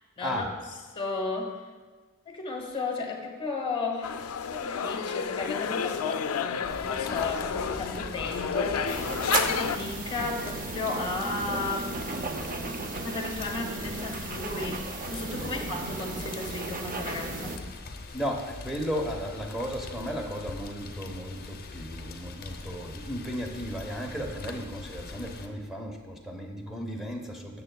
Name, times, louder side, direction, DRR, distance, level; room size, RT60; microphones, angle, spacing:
voice 1, 0.9-1.6 2.2-4.2 4.5-12.4 12.9-17.6, left 3 dB, 25° left, 1 dB, 1.2 m, -34 dB
sound 1, 4.0-9.8, left 6 dB, 80° left, 0.4 m, -31 dB
Rain, 6.6-25.5, left 3 dB, 45° left, 0.7 m, -42 dB
sound 2, 8.9-17.6, right 3 dB, 40° right, 0.6 m, -35 dB
voice 2, 18.1-27.6, equal, ahead, 1 dB, 0.9 m, -35 dB
15.0 x 6.8 x 2.3 m, 1.3 s
head